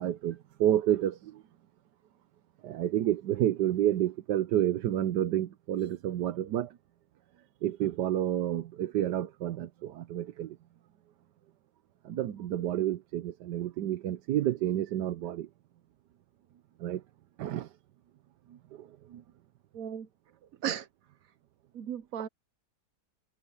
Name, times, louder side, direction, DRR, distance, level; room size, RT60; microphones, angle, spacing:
voice 1, 0.0-1.4 2.6-6.8 7.6-10.6 12.0-15.5 16.8-17.0 17.4-17.7 18.5-19.2, right 12 dB, 85° right, 1.4 m, -30 dB
voice 2, 19.7-20.1 20.6-20.9 21.7-22.3, right 9 dB, 60° right, 1.1 m, -35 dB
omnidirectional pair, 1.8 m